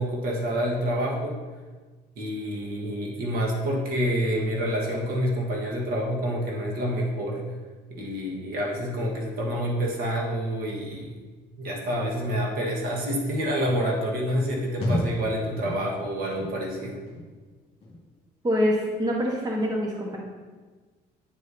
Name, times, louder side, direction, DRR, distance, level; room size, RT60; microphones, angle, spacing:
voice 1, 0.0-1.4 2.2-7.5 7.9-11.1 11.6-17.0, equal, 60° right, -2 dB, 1.5 m, -28 dB
sound 1, 13.6-13.8 14.4-14.5 14.8-15.3 15.6-16.0 16.3-16.7 17.1-17.4 17.8-18.2 18.6-18.7, left 1 dB, 35° left, 2.0 m, -31 dB
voice 2, 18.4-20.2, equal, 20° right, -2 dB, 1.3 m, -25 dB
9.1 x 4.9 x 2.8 m, 1.4 s
cardioid pair, 110°, 17 cm